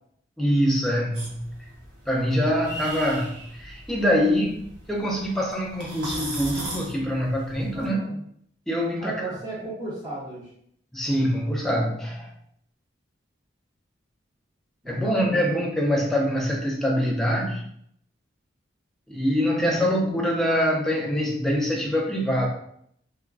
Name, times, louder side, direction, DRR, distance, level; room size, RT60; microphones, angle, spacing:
voice 1, 0.4-1.6 2.1-4.6 4.9-8.1 8.7-9.2 10.9-12.3 14.9-17.6 19.1-22.5, equal, ahead, -2 dB, 0.5 m, -24 dB
sound 1, 1.1-7.9, right 1 dB, 65° right, 1.0 m, -39 dB
voice 2, 7.7-8.2 9.0-10.5 14.8-15.6 19.7-20.0, right 2 dB, 20° right, -9 dB, 0.9 m, -36 dB
3.5 x 2.2 x 2.3 m, 0.68 s
head